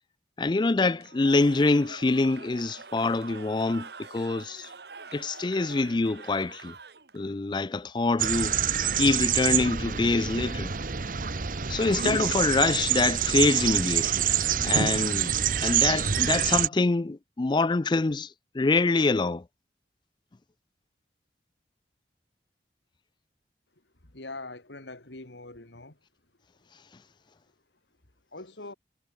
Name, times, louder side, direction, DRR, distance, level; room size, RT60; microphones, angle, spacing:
voice 1, 0.4-4.7 5.1-6.7 7.1-8.6 8.9-10.7 11.7-14.2 14.6-15.4 15.6-18.3 18.5-19.4, left 3 dB, 25° left, 0.4 m, -25 dB
Cheering / Crowd, 1.0-7.3, right 4 dB, 65° right, 1.8 m, -45 dB
sound 1, 8.2-16.7, right 9 dB, 50° right, 1.0 m, -26 dB
voice 2, 24.0-26.0 28.3-28.7, left 2 dB, 80° left, 3.1 m, -42 dB
head